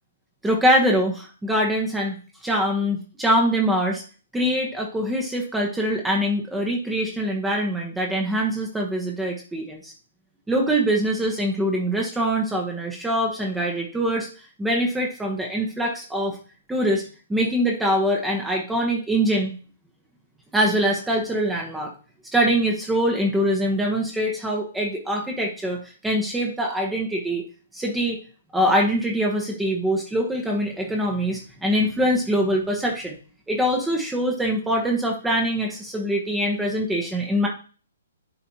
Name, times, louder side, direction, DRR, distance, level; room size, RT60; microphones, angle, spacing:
voice 1, 0.4-2.2 2.4-4.0 4.3-9.9 10.5-14.3 14.6-16.4 16.7-17.0 17.3-19.5 20.5-21.9 22.3-27.4 27.7-28.2 28.5-33.2 33.5-37.5, equal, 5° right, 0 dB, 1.1 m, -23 dB
11.0 x 4.1 x 2.8 m, 0.38 s
figure-of-eight pair, 125°, 0 cm